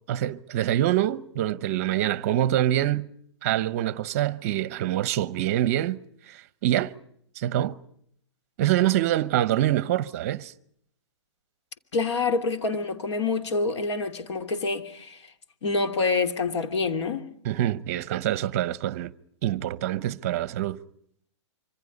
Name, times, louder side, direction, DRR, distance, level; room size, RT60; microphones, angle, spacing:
voice 1, 0.1-3.1 3.4-6.0 6.3-6.9 7.4-7.8 8.6-10.5 17.4-19.1 19.4-20.8, right 13 dB, 30° right, 0.9 m, -25 dB
voice 2, 11.9-15.2 15.6-17.3, left 3 dB, 65° left, 2.9 m, -27 dB
26.0 x 25.0 x 5.3 m
hypercardioid pair, 175°, 16 cm